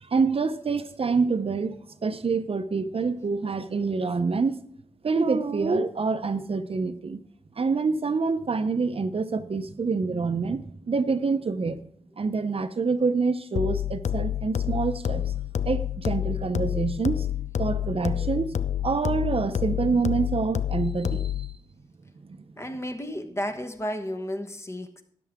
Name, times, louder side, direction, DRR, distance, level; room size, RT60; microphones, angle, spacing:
voice 1, 0.0-1.8 2.0-4.6 5.0-7.2 7.6-11.8 12.2-15.3 15.6-17.3 17.6-18.6 18.8-21.5 22.3-22.4, right 4 dB, 55° right, 0.8 m, -26 dB
sound 1, 13.6-21.6, left 10 dB, 80° left, 0.4 m, -28 dB
voice 2, 22.6-25.0, equal, 25° left, 1.2 m, -33 dB
13.0 x 10.0 x 3.6 m
wide cardioid pair, 100°, 12 cm